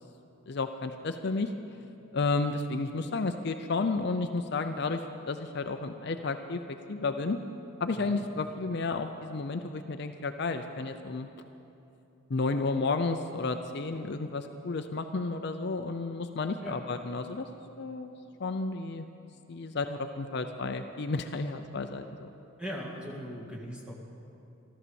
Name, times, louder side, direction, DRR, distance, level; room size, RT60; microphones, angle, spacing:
voice 1, 0.5-1.5 2.1-5.0 5.3-7.4 7.8-11.3 12.3-17.5 17.8-18.1 18.4-19.1 19.5-22.3, left 3 dB, 50° left, 7 dB, 0.5 m, -32 dB
voice 2, 7.9-8.2 16.6-16.8 22.6-23.9, equal, 5° right, -3 dB, 2.0 m, -40 dB
14.0 x 13.0 x 7.0 m, 2.8 s
head